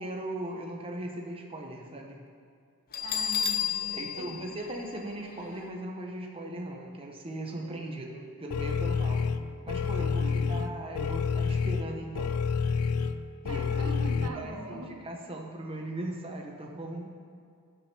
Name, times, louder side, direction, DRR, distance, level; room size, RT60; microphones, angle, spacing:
voice 1, 0.0-2.2 3.9-9.2 9.7-12.4 13.4-17.1, right 1 dB, 25° right, 1 dB, 0.7 m, -39 dB
Bell, 2.9-5.6, left 8 dB, 40° left, 0.7 m, -32 dB
voice 2, 3.0-4.4 7.5-8.2 9.1-9.4 10.0-10.5 13.5-15.3, right 1 dB, 80° right, 2 dB, 1.2 m, -43 dB
sound 1, 8.5-14.3, left 5 dB, 75° left, 0.4 m, -29 dB
17.0 x 5.9 x 3.3 m, 2.3 s
head